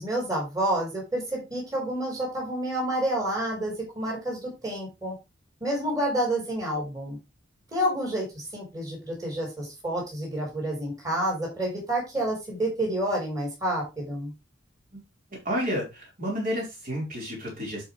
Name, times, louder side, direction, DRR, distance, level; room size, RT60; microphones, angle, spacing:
voice 1, 0.0-5.1 5.6-7.2 7.7-14.3, right 1 dB, 20° right, -2 dB, 4.8 m, -29 dB
voice 2, 15.4-17.8, equal, 45° right, -3 dB, 4.9 m, -30 dB
11.5 x 5.3 x 3.5 m, 0.25 s
head